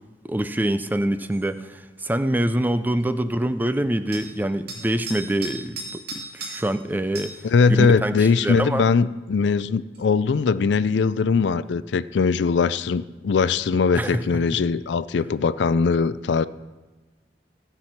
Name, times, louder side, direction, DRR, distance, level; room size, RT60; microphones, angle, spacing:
voice 1, 0.2-8.8 13.9-14.2, right 1 dB, 10° right, 11 dB, 0.4 m, -25 dB
sound 1, 1.3-1.5 4.1-4.3 4.7-6.8 7.1-7.4 9.9-10.0, right 2 dB, 60° right, 2.3 m, -36 dB
voice 2, 7.4-16.4, left 5 dB, 75° left, 16 dB, 0.4 m, -21 dB
15.5 x 6.1 x 5.8 m, 1.2 s
head